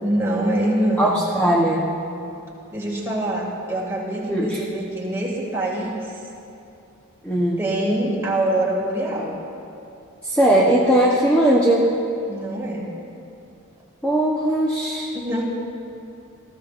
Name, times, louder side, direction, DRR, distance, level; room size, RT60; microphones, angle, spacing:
voice 1, 0.0-1.2 2.7-6.2 7.6-9.4 12.3-12.9 15.1-15.4, right 1 dB, 10° right, -4 dB, 2.2 m, -24 dB
voice 2, 1.0-1.9 4.3-4.6 7.2-7.6 10.2-11.9 14.0-15.1, right 1 dB, 5° left, -5 dB, 0.9 m, -19 dB
20.0 x 14.0 x 2.5 m, 2.7 s
head